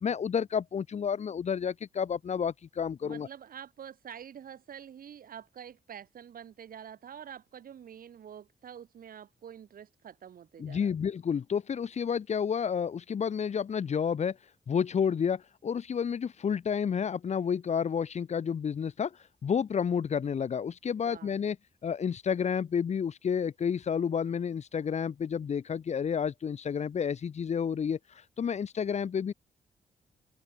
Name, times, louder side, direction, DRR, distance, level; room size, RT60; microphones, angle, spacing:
voice 1, 0.0-3.3 10.6-14.4 14.7-19.1 19.4-21.6 21.8-28.0 28.4-29.3, left 7 dB, 45° left, 0.8 m, -30 dB
voice 2, 3.0-10.9 21.0-21.4, right 9 dB, 70° right, 2.3 m, -47 dB
open air
cardioid pair, 120°, 16 cm